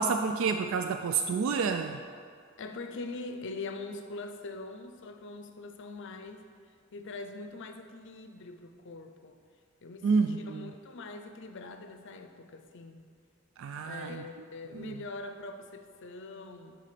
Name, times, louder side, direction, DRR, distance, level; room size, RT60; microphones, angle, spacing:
voice 1, 0.0-2.0 10.0-10.7 13.6-14.2 14.7-15.0, right 5 dB, 65° right, 7 dB, 0.3 m, -29 dB
voice 2, 2.6-6.5 6.9-9.4 9.8-13.0 13.8-16.8, left 3 dB, 60° left, 6 dB, 0.6 m, -43 dB
10.0 x 3.9 x 5.0 m, 2.1 s
head